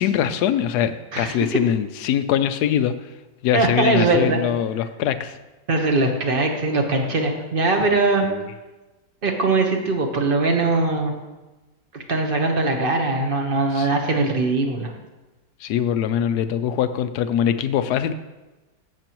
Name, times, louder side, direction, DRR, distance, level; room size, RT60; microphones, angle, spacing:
voice 1, 0.0-2.9 3.4-5.4 8.3-8.4 13.7-13.9 15.6-18.1, left 9 dB, 70° left, 10 dB, 1.0 m, -22 dB
voice 2, 1.1-1.5 3.5-4.4 5.7-8.3 9.2-11.1 12.1-14.9, right 3 dB, 35° right, 3 dB, 1.1 m, -21 dB
15.5 x 6.8 x 3.0 m, 1.1 s
omnidirectional pair, 2.0 m